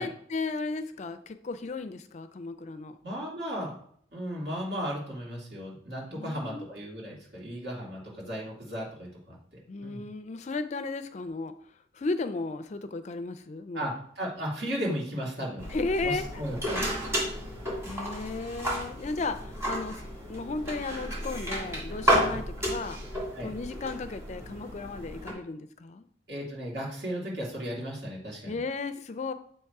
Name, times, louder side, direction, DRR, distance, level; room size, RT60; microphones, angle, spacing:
voice 1, 0.0-3.0 6.1-6.7 9.7-11.5 11.9-13.9 15.7-16.3 17.2-17.4 17.8-20.0 20.3-23.0 23.4-26.1 28.5-29.3, left 3 dB, 40° left, 10 dB, 0.4 m, -34 dB
voice 2, 3.0-3.7 4.1-9.4 9.8-10.0 13.7-15.6 16.0-16.8 22.2-22.4 23.3-23.5 26.3-28.6, equal, 60° right, -3 dB, 2.4 m, -35 dB
sound 1, 15.6-25.3, equal, 15° right, 2.1 m, -32 dB
7.5 x 3.0 x 4.7 m, 0.62 s
head